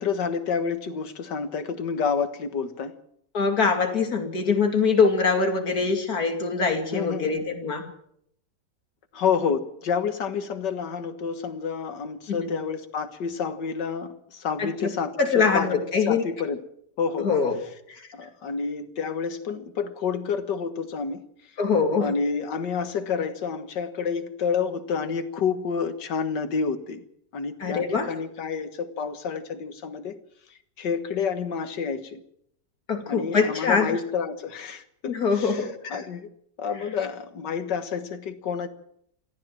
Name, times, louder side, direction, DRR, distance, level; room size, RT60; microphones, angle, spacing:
voice 1, 0.0-3.0 6.9-7.4 9.1-15.7 16.0-16.6 17.0-17.3 18.1-21.2 22.0-27.0 27.3-30.2 30.8-32.2 33.1-35.6 35.9-36.3 36.6-38.7, left 6 dB, 75° left, 9 dB, 2.1 m, -29 dB
voice 2, 3.3-7.9 12.3-12.5 14.6-14.9 15.2-16.2 17.2-17.6 17.9-18.1 21.6-22.1 27.6-28.1 32.9-34.0 35.1-36.1, left 5 dB, 55° left, 5 dB, 3.0 m, -23 dB
23.0 x 15.0 x 7.6 m, 0.71 s
omnidirectional pair, 1.9 m